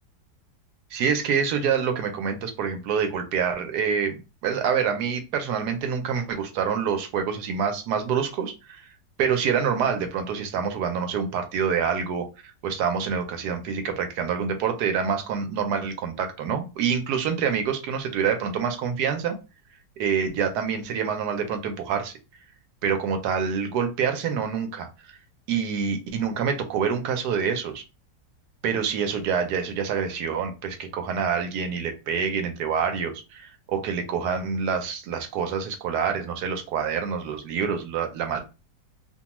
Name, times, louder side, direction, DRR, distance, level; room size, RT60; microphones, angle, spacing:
voice 1, 0.9-8.8 9.2-19.4 20.0-22.1 22.8-25.2 25.5-27.8 28.6-38.4, right 6 dB, 75° right, 6 dB, 1.1 m, -26 dB
2.7 x 2.2 x 2.9 m, 0.30 s
omnidirectional pair, 1.8 m